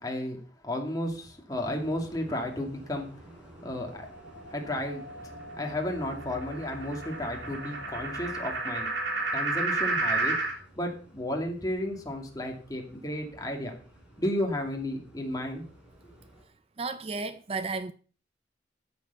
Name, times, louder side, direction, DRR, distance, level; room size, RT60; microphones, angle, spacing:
voice 1, 0.0-0.4 0.6-3.1 3.6-4.1 4.5-5.0 5.6-8.9 9.3-10.3 10.8-13.7 14.2-15.6, left 1 dB, 20° left, 2.4 m, -33 dB
sound 1, 1.5-16.5, right 1 dB, 5° right, 4.1 m, -51 dB
sound 2, 3.8-10.6, right 2 dB, 85° right, 3.2 m, -32 dB
voice 2, 16.8-17.9, right 4 dB, 30° right, 0.5 m, -33 dB
13.5 x 7.0 x 5.6 m
head